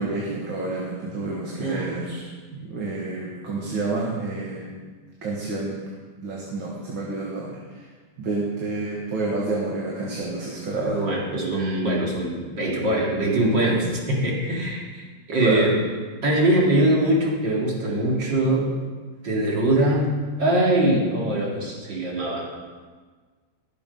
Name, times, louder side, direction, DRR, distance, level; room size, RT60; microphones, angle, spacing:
voice 1, 0.0-4.7 5.2-5.8 6.2-7.9 8.2-11.0 15.4-15.7, right 3 dB, 80° right, -3 dB, 2.5 m, -29 dB
voice 2, 1.6-1.9 10.8-15.7 16.2-18.7 19.2-20.1 20.4-22.5, right 1 dB, 65° right, -3 dB, 3.2 m, -22 dB
17.5 x 7.0 x 5.4 m, 1.5 s
omnidirectional pair, 2.1 m